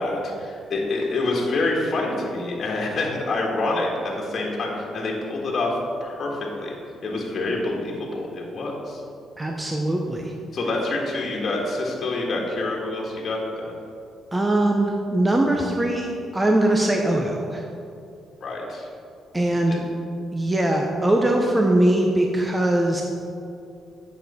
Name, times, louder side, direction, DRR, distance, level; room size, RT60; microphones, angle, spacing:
voice 1, 0.0-3.9 4.2-5.7 6.0-6.7 7.0-9.0 10.5-13.7 18.4-18.9 19.7-19.8, left 2 dB, 50° left, -2 dB, 1.6 m, -27 dB
voice 2, 9.4-10.3 14.3-17.6 19.3-19.8 20.3-23.0, right 1 dB, 15° right, 1 dB, 0.7 m, -21 dB
9.1 x 6.3 x 4.2 m, 2.5 s
cardioid pair, 90°, 0 cm